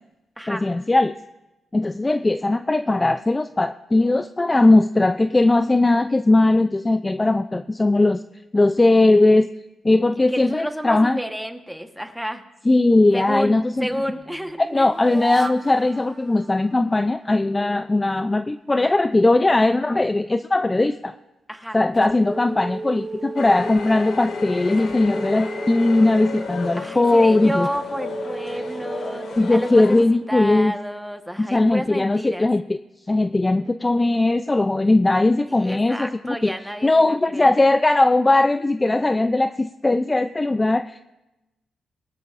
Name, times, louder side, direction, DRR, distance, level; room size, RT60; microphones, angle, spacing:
voice 1, 0.5-1.2 1.7-8.2 8.5-9.5 9.8-11.2 12.7-13.9 14.7-21.1 21.7-27.7 29.4-30.7 31.4-32.6 33.1-36.5 36.8-41.0, left 2 dB, 20° left, 10 dB, 0.4 m, -19 dB
voice 2, 10.3-12.4 13.1-14.9 21.5-21.8 26.8-32.5 35.5-37.5, equal, ahead, 6 dB, 1.2 m, -31 dB
sound 1, 13.4-17.4 21.9-24.3 24.8-30.4, right 3 dB, 30° right, 0.8 m, -36 dB
sound 2, 23.4-30.0, left 4 dB, 75° left, 2.0 m, -32 dB
21.5 x 12.0 x 2.5 m, 0.99 s
cardioid pair, 75°, 0 cm